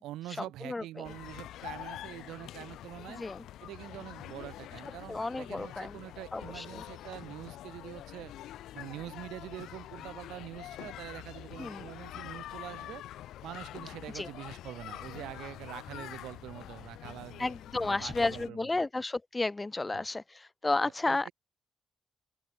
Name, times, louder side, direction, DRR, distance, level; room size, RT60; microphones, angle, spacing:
voice 1, 0.0-3.2 3.6-8.3 8.7-13.0 13.4-17.5 17.8-18.9 19.9-20.0 21.0-21.3, right 15 dB, 80° right, 4.0 m, -45 dB
sound 1, 1.0-18.5, left 13 dB, 80° left, 2.0 m, -45 dB
voice 2, 3.1-3.5 5.1-6.0 6.3-6.8 11.6-11.8 14.1-14.3 17.4-21.3, left 2 dB, 25° left, 0.4 m, -32 dB
open air
supercardioid pair, 50°, 0 cm